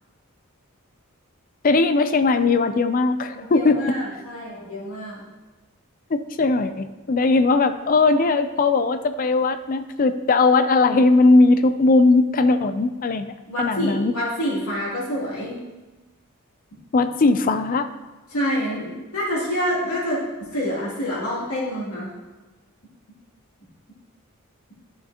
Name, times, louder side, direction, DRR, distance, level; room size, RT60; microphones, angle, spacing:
voice 1, 1.6-3.9 6.1-14.1 16.9-17.9, left 3 dB, 40° left, 10 dB, 0.4 m, -19 dB
voice 2, 3.3-5.2 13.5-15.6 18.3-20.2 20.5-22.1, equal, 80° left, -7 dB, 3.0 m, -27 dB
12.0 x 6.5 x 2.9 m, 1.2 s
head